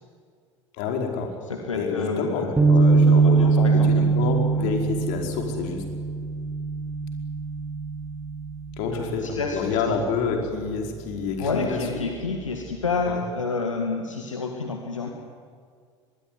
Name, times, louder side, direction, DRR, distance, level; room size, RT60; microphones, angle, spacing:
voice 1, 0.8-1.3 1.7-3.5 3.9-5.8 8.8-11.8 13.1-13.2, left 5 dB, 60° left, 2 dB, 5.0 m, -28 dB
voice 2, 1.5-2.6 3.0-3.9 8.9-10.0 11.4-15.1, left 4 dB, 85° left, 3 dB, 2.0 m, -29 dB
sound 1, 2.6-9.0, right 4 dB, 15° right, 3.1 m, -22 dB
24.0 x 21.0 x 9.8 m, 2.1 s
figure-of-eight pair, 70°, 16 cm